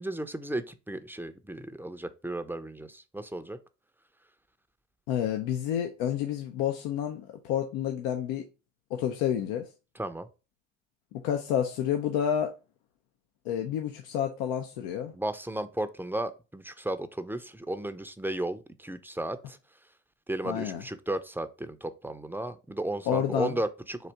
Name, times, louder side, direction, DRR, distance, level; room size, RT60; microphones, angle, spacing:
voice 1, 0.0-3.6 10.0-10.3 15.1-19.6 20.3-24.1, right 1 dB, 5° right, 0.5 m, -34 dB
voice 2, 5.1-8.5 8.9-9.7 11.2-12.5 13.5-15.1 20.4-20.8 23.1-23.6, left 9 dB, 80° left, 0.7 m, -29 dB
4.0 x 2.7 x 4.5 m
hypercardioid pair, 60°, 39 cm